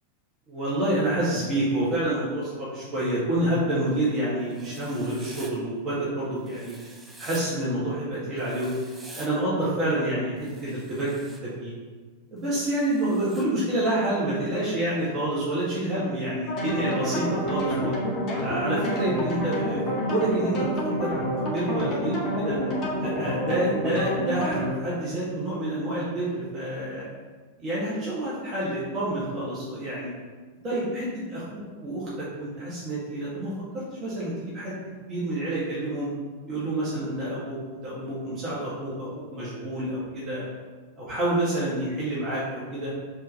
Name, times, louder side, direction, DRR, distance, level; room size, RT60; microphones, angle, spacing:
voice 1, 0.5-6.8 7.2-8.7 9.1-11.7 12.3-17.9 18.4-19.8 20.1-22.6 23.0-27.1 27.6-30.1 30.6-34.8 35.1-36.1 36.5-40.4 41.0-42.9, right 1 dB, 30° right, -8 dB, 2.0 m, -28 dB
Writing, 4.5-5.5 6.5-7.4 8.4-9.3 10.4-11.4 12.4-13.5, right 1 dB, 10° right, 0.9 m, -47 dB
sound 1, 16.5-24.7, equal, 35° left, 1.7 m, -28 dB
4.8 x 4.4 x 5.6 m, 1.4 s
figure-of-eight pair, 90°, 0 cm